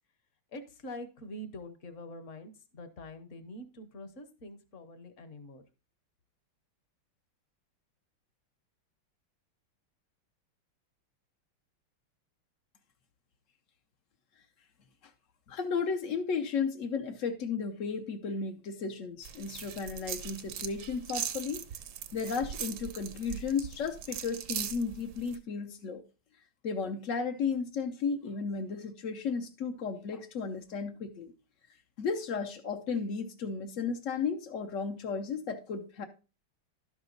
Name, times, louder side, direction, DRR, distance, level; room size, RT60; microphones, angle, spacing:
voice 1, 0.5-5.6, left 1 dB, 50° left, 0.9 m, -45 dB
voice 2, 15.5-21.6 22.1-26.0 26.6-31.3 32.0-36.0, left 5 dB, 75° left, 0.7 m, -34 dB
sound 1, 19.2-25.4, right 9 dB, 65° right, 1.1 m, -40 dB
11.5 x 6.1 x 3.9 m
omnidirectional pair, 2.4 m